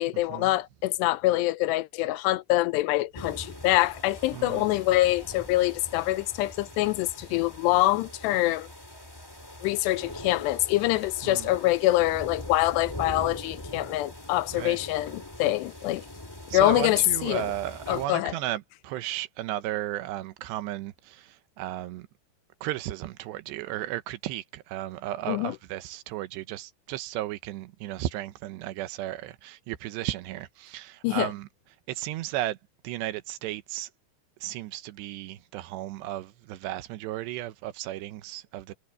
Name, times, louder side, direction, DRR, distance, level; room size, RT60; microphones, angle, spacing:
voice 1, 0.0-8.7 9.6-16.0 16.5-17.5 17.9-18.3 25.3-25.6 31.0-31.3, left 17 dB, 90° left, 2.8 m, -25 dB
sound 1, 3.1-18.1, left 1 dB, 10° left, 1.3 m, -42 dB
voice 2, 4.3-4.7 11.2-11.5 14.5-14.8 16.5-22.1 22.6-31.5 31.9-32.6 32.8-33.9 34.4-38.7, right 14 dB, 85° right, 3.1 m, -34 dB
omnidirectional pair, 4.9 m